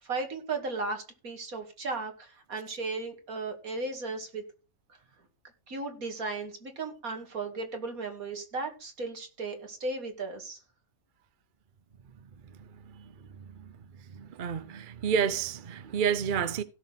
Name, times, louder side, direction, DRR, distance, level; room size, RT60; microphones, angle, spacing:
voice 1, 0.0-4.4 5.7-10.6, right 3 dB, 70° right, 2.6 m, -35 dB
voice 2, 14.1-16.6, right 7 dB, 45° right, 0.7 m, -29 dB
16.5 x 6.5 x 4.1 m
omnidirectional pair, 1.5 m